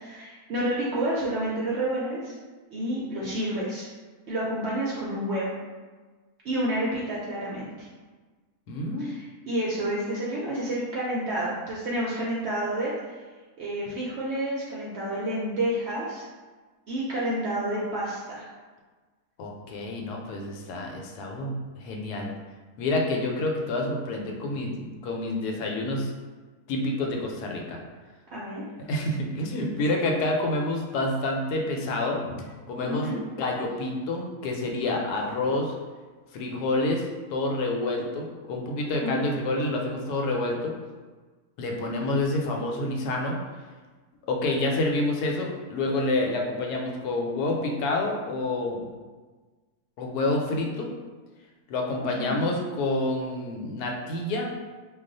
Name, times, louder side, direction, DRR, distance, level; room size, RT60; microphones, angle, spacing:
voice 1, 0.0-2.3 2.7-3.9 4.3-5.5 6.4-7.7 9.0-12.9 13.6-16.2 16.9-18.5 28.3-28.6 32.3-32.4 32.8-33.2 39.0-39.2 52.2-52.4, right 1 dB, 65° right, -6 dB, 0.7 m, -29 dB
voice 2, 8.7-9.1 19.4-22.3 22.8-26.1 26.7-27.8 28.9-32.2 32.7-35.7 36.3-40.7 41.6-43.4 44.3-48.8 50.0-50.9 51.7-54.5, left 2 dB, 85° left, 0 dB, 1.1 m, -28 dB
2.4 x 2.3 x 3.8 m, 1.4 s
omnidirectional pair, 1.6 m